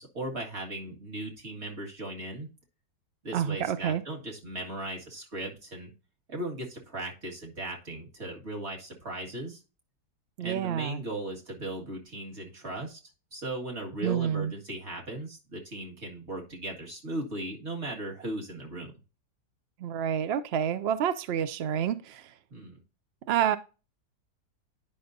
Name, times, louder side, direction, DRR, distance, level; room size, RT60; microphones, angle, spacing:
voice 1, 0.0-2.5 3.2-5.9 6.3-9.6 10.4-13.0 13.3-18.9 22.5-22.8, right 1 dB, 45° right, 2.2 m, -37 dB
voice 2, 3.3-4.0 10.4-11.0 14.0-14.5 19.8-22.3 23.3-23.6, right 9 dB, 70° right, 0.6 m, -28 dB
10.5 x 5.5 x 2.6 m
omnidirectional pair, 1.6 m